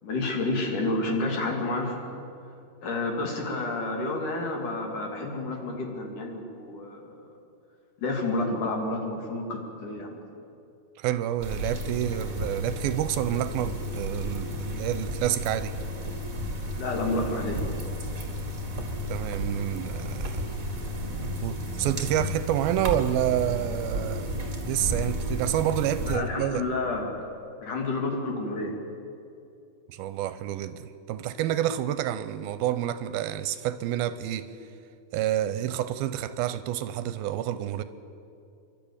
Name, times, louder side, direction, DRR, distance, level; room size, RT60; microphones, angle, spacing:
voice 1, 0.0-2.2 2.8-7.2 8.0-10.2 16.8-17.6 26.1-27.2 27.6-28.7, left 2 dB, 55° left, 3.9 m, -30 dB
voice 2, 11.0-15.8 19.1-20.5 21.4-24.4 24.7-26.6 29.9-34.5 35.1-37.8, right 12 dB, 80° right, 2.5 m, -28 dB
sound 1, 11.4-26.2, equal, 25° right, 2.1 m, -33 dB
28.5 x 12.5 x 8.7 m
omnidirectional pair, 4.4 m